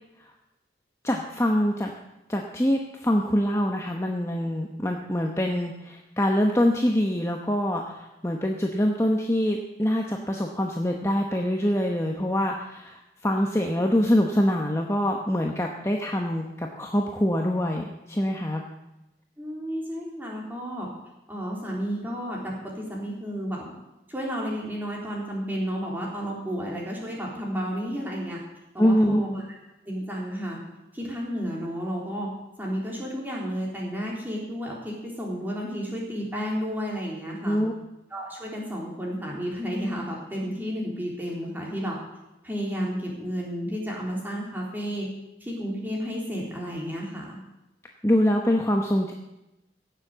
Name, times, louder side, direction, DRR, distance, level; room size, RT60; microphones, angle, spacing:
voice 1, 1.0-1.9 2.3-18.6 28.8-29.2 37.4-37.7 48.0-49.1, equal, 15° left, 1 dB, 1.0 m, -24 dB
voice 2, 19.4-20.9 21.3-23.7 24.1-28.4 28.7-29.5 29.8-30.6 30.9-32.3 32.6-37.6 38.1-42.0 42.4-45.1 45.4-47.4, equal, 10° right, -3 dB, 3.7 m, -32 dB
16.5 x 7.4 x 7.9 m, 0.95 s
head